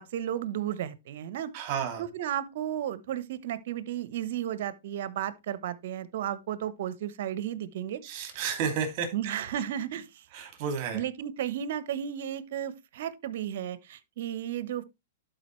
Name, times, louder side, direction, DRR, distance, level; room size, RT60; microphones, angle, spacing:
voice 1, 0.0-1.5 2.0-8.0 8.3-8.4 9.1-10.3 10.9-14.8, right 10 dB, 60° right, 1.0 m, -33 dB
voice 2, 1.5-2.0 8.0-9.1 10.3-11.0, right 6 dB, 45° right, 2.6 m, -31 dB
12.0 x 5.0 x 3.1 m
hypercardioid pair, 135°, 0 cm